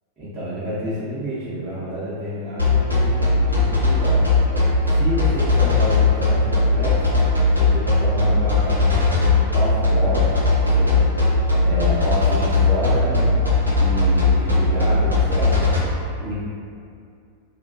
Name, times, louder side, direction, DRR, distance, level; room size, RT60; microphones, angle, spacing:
voice 1, 0.2-3.2 3.5-4.3 4.9-7.2 7.5-11.1 11.6-13.4 13.8-15.7 16.2-16.4, equal, 10° right, -16 dB, 0.8 m, -29 dB
sound 1, 2.6-15.8, left 3 dB, 85° right, 0.5 m, -18 dB
2.3 x 2.3 x 2.6 m, 2.4 s
figure-of-eight pair, 90°, 0 cm